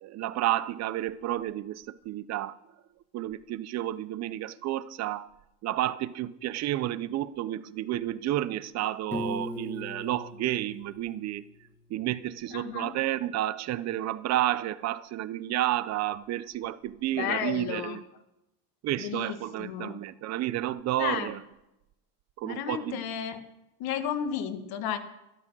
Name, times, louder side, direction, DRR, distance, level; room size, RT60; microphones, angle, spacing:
voice 1, 0.0-2.6 3.1-5.3 5.6-11.4 11.9-18.0 18.8-21.4 22.4-23.0, right 14 dB, 40° right, 0.6 m, -31 dB
Piano, 9.1-12.0, left 1 dB, 5° left, 1.7 m, -39 dB
voice 2, 12.5-13.0 17.2-18.0 19.0-20.0 21.0-21.3 22.4-23.4 23.8-25.0, left 9 dB, 60° left, 1.6 m, -33 dB
13.0 x 12.5 x 6.1 m
cardioid pair, 160°, 40 cm